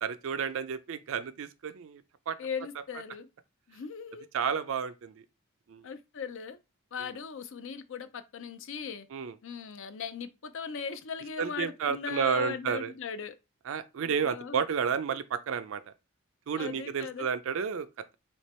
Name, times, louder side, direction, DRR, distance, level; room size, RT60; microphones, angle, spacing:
voice 1, 0.0-2.4 4.3-5.2 5.7-5.8 7.0-7.1 9.1-9.3 11.4-12.9 13.7-15.8 16.5-18.2, right 6 dB, 65° right, 0.4 m, -31 dB
voice 2, 2.4-3.3 3.7-4.3 5.8-6.6 6.9-9.1 9.4-13.3 14.0-14.6 16.6-17.3, left 6 dB, 60° left, 0.5 m, -39 dB
3.2 x 2.9 x 4.2 m
head